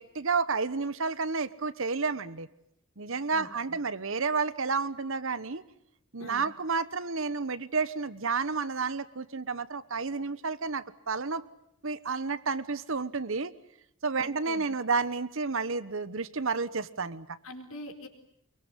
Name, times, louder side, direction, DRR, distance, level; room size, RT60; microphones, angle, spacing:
voice 1, 0.0-2.5 3.0-5.6 6.1-11.4 11.8-13.5 14.0-17.3, right 4 dB, 60° right, 16 dB, 1.1 m, -31 dB
voice 2, 3.3-3.8 6.2-6.4 14.2-14.6 17.4-18.1, left 1 dB, 70° left, 5 dB, 4.5 m, -44 dB
24.5 x 23.0 x 9.8 m, 0.75 s
head